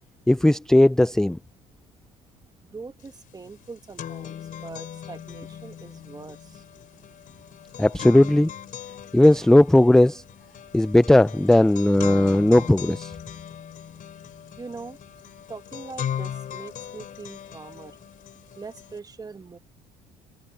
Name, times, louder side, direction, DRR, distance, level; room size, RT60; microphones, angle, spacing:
voice 1, 0.3-1.4 7.8-8.5 9.1-10.2 10.7-13.1, left 1 dB, 5° left, 0.4 m, -17 dB
voice 2, 2.7-6.6 14.6-15.0 15.5-18.0 18.6-19.6, right 4 dB, 20° right, 1.5 m, -42 dB
sound 1, 3.1-3.2 3.5-19.0, left 9 dB, 55° left, 3.1 m, -39 dB
cardioid pair, 110°, 17 cm